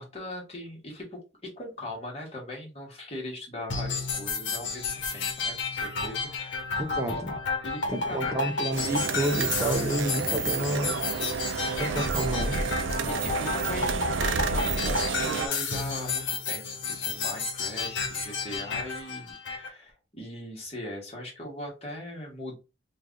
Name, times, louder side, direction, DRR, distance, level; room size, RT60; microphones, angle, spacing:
voice 1, 0.0-6.7 7.1-7.2 7.6-8.5 11.9-12.4 13.1-22.6, left 1 dB, 30° left, 1.4 m, -40 dB
sound 1, 3.7-19.7, left 4 dB, 70° left, 0.9 m, -32 dB
voice 2, 6.8-7.4 7.9-11.0 11.8-12.6, right 1 dB, 15° right, 0.5 m, -30 dB
sound 2, 8.7-15.5, right 4 dB, 75° right, 0.4 m, -30 dB
3.2 x 2.4 x 3.7 m
head